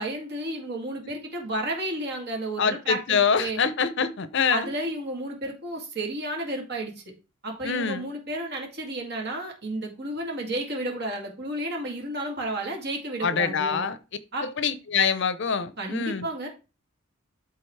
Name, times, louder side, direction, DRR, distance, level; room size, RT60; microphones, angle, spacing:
voice 1, 0.0-3.6 4.5-7.0 7.4-13.9 14.3-14.5 15.8-16.5, right 1 dB, 55° right, 2.4 m, -32 dB
voice 2, 2.6-4.7 7.6-8.1 13.2-14.0 14.4-16.3, left 6 dB, 60° left, 0.6 m, -25 dB
12.0 x 4.1 x 3.3 m
head